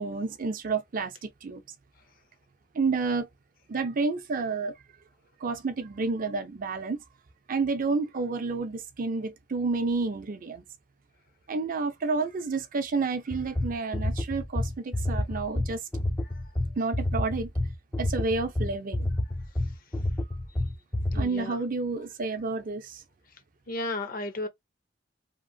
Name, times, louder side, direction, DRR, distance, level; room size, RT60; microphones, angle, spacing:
voice 1, 0.0-1.6 2.7-3.3 3.7-4.7 5.4-7.0 7.5-10.6 11.5-15.8 16.8-17.5 18.0-19.1 21.1-23.0, right 4 dB, 45° right, 0.5 m, -30 dB
sound 1, 13.3-21.3, left 1 dB, 10° left, 0.3 m, -29 dB
voice 2, 21.1-21.6 23.7-24.5, left 2 dB, 50° left, 0.6 m, -33 dB
2.8 x 2.5 x 2.6 m
head